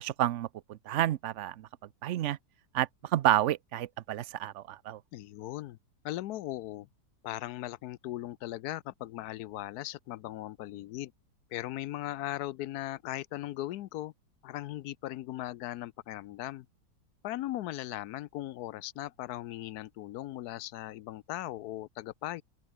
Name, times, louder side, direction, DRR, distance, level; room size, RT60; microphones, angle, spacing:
voice 1, 0.0-1.7 2.0-2.4 2.7-5.0, right 13 dB, 70° right, 0.7 m, -30 dB
voice 2, 5.1-5.8 6.0-6.9 7.2-11.1 11.5-14.1 14.4-16.7 17.2-22.4, left 15 dB, 70° left, 1.1 m, -38 dB
open air
omnidirectional pair, 1.8 m